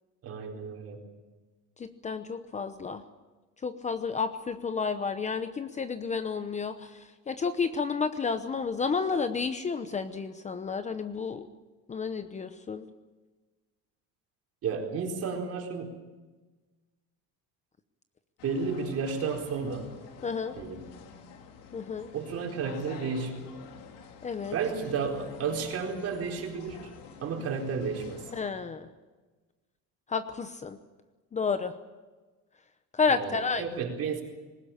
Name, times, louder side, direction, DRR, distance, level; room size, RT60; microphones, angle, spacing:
voice 1, 0.2-1.0 14.6-15.9 18.4-19.9 20.6-20.8 22.1-23.5 24.5-26.9 27.2-28.2 33.1-34.2, right 5 dB, 45° right, 2 dB, 4.3 m, -32 dB
voice 2, 1.8-3.0 3.6-11.5 11.9-12.9 20.2-20.6 21.7-22.1 24.2-24.6 28.3-28.9 30.1-30.8 31.3-31.7 32.9-33.6, left 5 dB, 20° left, 10 dB, 0.9 m, -31 dB
sound 1, 18.4-28.5, left 6 dB, 70° left, 3.3 m, -48 dB
20.5 x 19.0 x 8.7 m, 1.3 s
cardioid pair, 145°, 34 cm